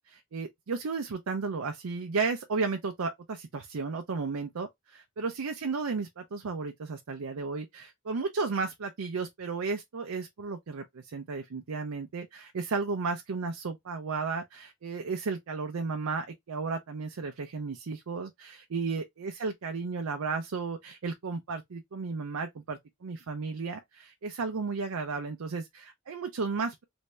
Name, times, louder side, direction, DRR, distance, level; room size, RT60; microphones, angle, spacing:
voice 1, 0.1-26.8, right 4 dB, 80° right, 0.5 m, -34 dB
3.1 x 2.7 x 3.3 m
head